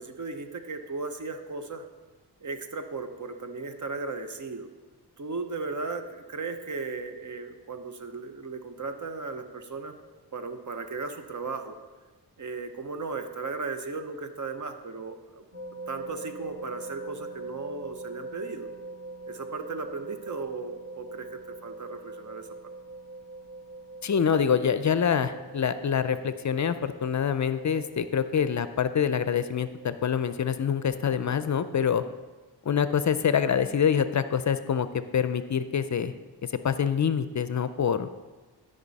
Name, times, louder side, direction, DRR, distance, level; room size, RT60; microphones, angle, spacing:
voice 1, 0.0-1.9 2.4-4.7 5.2-9.9 10.3-11.8 12.4-15.4 15.9-18.7 19.3-22.5, right 4 dB, 50° right, 7 dB, 0.9 m, -36 dB
sound 1, 15.5-31.5, right 2 dB, 25° right, 2.1 m, -44 dB
voice 2, 24.0-32.0 32.6-36.1 36.5-38.1, left 7 dB, 45° left, 12 dB, 0.5 m, -26 dB
13.0 x 5.4 x 4.1 m, 1.3 s
cardioid pair, 55°, 39 cm